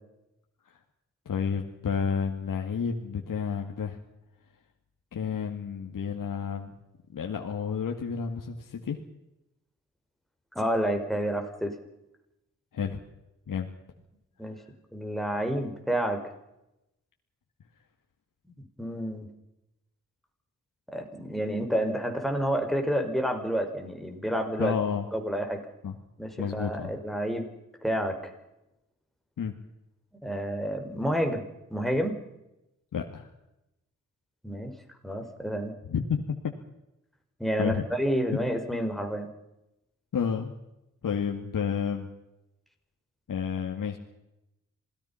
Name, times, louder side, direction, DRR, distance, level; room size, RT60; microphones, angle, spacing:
voice 1, 1.3-4.0 5.1-6.7 7.1-9.0 12.7-13.0 13.5-13.7 24.6-25.1 25.8-26.0 26.4-26.9 29.4-29.5 32.9-33.3 35.9-36.2 37.6-37.8 40.1-40.5 41.0-42.1 43.3-44.0, left 6 dB, 75° left, 2 dB, 2.2 m, -30 dB
voice 2, 10.6-11.8 14.4-14.6 14.9-16.2 18.8-19.3 20.9-24.8 25.1-25.6 26.2-27.5 27.8-28.3 30.2-31.4 31.7-32.2 34.4-34.7 35.0-35.7 37.4-39.3, equal, ahead, 4 dB, 5.2 m, -29 dB
27.0 x 19.0 x 5.8 m, 0.90 s
cardioid pair, 55°, 32 cm